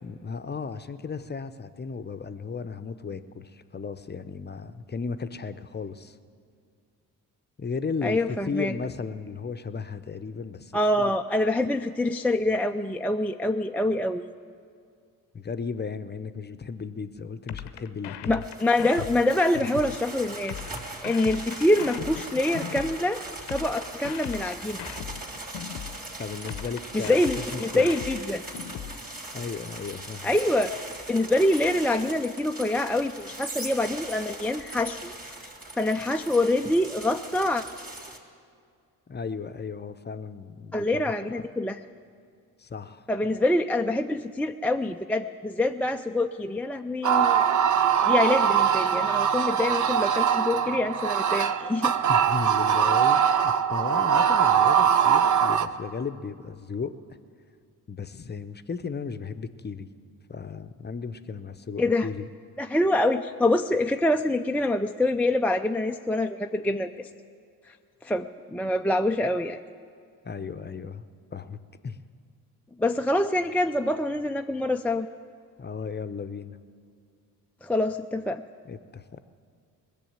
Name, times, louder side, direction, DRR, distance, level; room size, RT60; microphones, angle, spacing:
voice 1, 0.0-6.2 7.6-8.2 8.5-11.1 15.3-18.4 26.2-27.9 29.3-30.4 39.1-41.5 42.6-43.1 52.1-57.0 57.9-59.9 60.3-62.3 70.2-71.0 71.3-71.6 71.8-72.0 75.6-76.6 78.6-79.2, left 5 dB, 25° left, 11 dB, 0.8 m, -35 dB
voice 2, 8.0-8.7 10.7-14.2 18.3-20.6 21.0-23.2 23.5-24.8 26.9-28.4 30.2-30.7 31.1-35.1 35.8-37.6 40.7-41.8 43.1-47.4 48.0-51.9 61.8-62.1 62.6-67.1 68.0-69.6 72.8-75.1 77.6-78.4, left 1 dB, 5° left, 4 dB, 0.4 m, -25 dB
sound 1, 17.5-20.0 20.5-23.0 23.5-26.0 26.5-29.0, left 10 dB, 65° left, 0.8 m, -38 dB
sound 2, 18.4-38.2, right 2 dB, 20° right, 2.7 m, -40 dB
sound 3, 47.0-55.7, right 8 dB, 40° right, 0.7 m, -22 dB
20.0 x 6.9 x 8.9 m, 2.2 s
hypercardioid pair, 50°, 44 cm